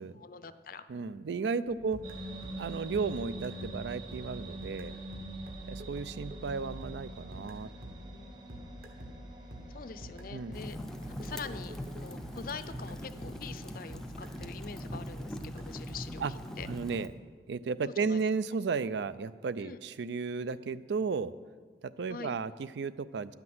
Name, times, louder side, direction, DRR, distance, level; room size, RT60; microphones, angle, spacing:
voice 1, 0.2-0.9 1.7-1.9 8.1-8.4 9.7-10.8 11.2-16.7 17.9-18.2 19.6-19.8 22.1-22.3, left 5 dB, 55° left, 12 dB, 0.5 m, -44 dB
voice 2, 0.9-2.0 2.5-4.9 5.7-7.7 10.3-10.6 16.2-16.3 16.7-17.1 17.5-21.3 21.8-23.3, right 5 dB, 80° right, 16 dB, 0.4 m, -34 dB
sound 1, 1.7-13.6 13.9-16.7, right 1 dB, 55° right, 1.4 m, -47 dB
sound 2, 2.0-16.0, right 1 dB, 25° right, 1.0 m, -47 dB
Fire, 10.5-17.1, equal, 5° left, 0.5 m, -42 dB
10.5 x 5.9 x 7.6 m, 1.5 s
head